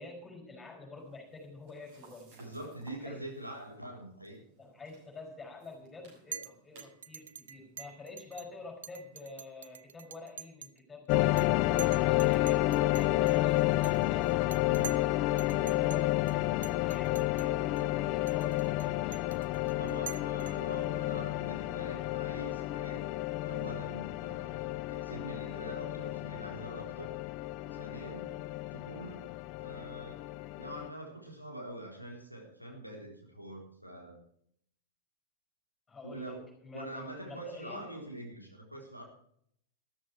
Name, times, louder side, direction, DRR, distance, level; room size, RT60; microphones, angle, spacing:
voice 1, 0.0-2.4 3.0-3.2 4.6-14.5 15.0-16.2 16.8-19.3 35.9-37.9, left 3 dB, 15° left, 2 dB, 5.2 m, -48 dB
sound 1, 1.0-9.2, right 4 dB, 50° right, 6.8 m, -60 dB
voice 2, 2.3-4.4 14.7-15.0 19.6-23.1 23.4-27.1 27.4-28.4 28.7-29.3 29.6-30.2 30.6-34.2 36.0-36.4 36.7-39.0, right 1 dB, 90° right, 0 dB, 3.9 m, -45 dB
Chink clink, 6.3-6.5 6.8-8.5 8.8-10.8 11.1-11.5 11.8-15.1 15.4-16.0 16.3-16.4 16.6-17.5 17.8-17.9 18.3-20.8, right 7 dB, 70° right, 0.6 m, -46 dB
sound 2, 11.1-30.9, left 17 dB, 45° left, 0.6 m, -31 dB
13.5 x 13.0 x 4.6 m, 0.68 s
figure-of-eight pair, 90°, 0 cm